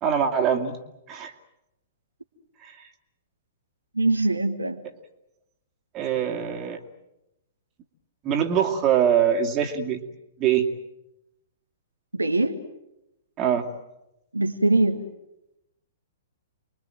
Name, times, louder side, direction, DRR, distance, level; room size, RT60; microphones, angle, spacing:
voice 1, 0.0-0.8 1.1-1.3 2.6-2.9 5.9-6.8 8.2-10.0 10.4-10.7 13.4-13.7, right 8 dB, 25° right, 3 dB, 2.5 m, -23 dB
voice 2, 4.0-4.8 12.1-12.6 14.3-15.0, right 2 dB, 80° right, 4 dB, 1.7 m, -22 dB
30.0 x 22.5 x 7.7 m, 0.88 s
figure-of-eight pair, 110°, 0 cm